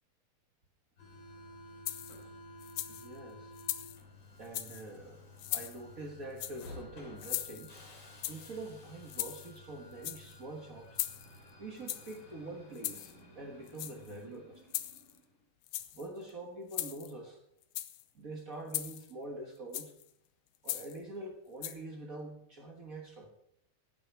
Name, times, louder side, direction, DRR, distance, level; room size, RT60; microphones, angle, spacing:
Subway metro underground, 1.0-15.3, left 1 dB, 35° left, 3.7 m, -53 dB
sound 1, 1.9-2.2 2.6-3.1 3.6-4.0 4.4-4.8 5.4-5.8 6.4-6.7 7.2-7.8 8.2-8.6 9.1-9.6 9.9-10.4 11.0-11.4 11.9-12.2 12.8-13.1 13.7-14.2 14.7-15.2 15.6-16.1 16.7-17.1 17.6-18.0 18.7-19.1 19.7-20.0 20.7-21.0 21.6-21.7, left 14 dB, 85° left, 2.3 m, -39 dB
voice 1, 2.9-3.5 4.4-5.2 5.5-7.7 8.3-11.0 11.6-14.7 15.9-17.4 18.1-20.0 20.6-23.3, right 2 dB, 65° right, 2 dB, 0.8 m, -45 dB
16.5 x 9.3 x 4.7 m, 0.71 s
omnidirectional pair, 3.8 m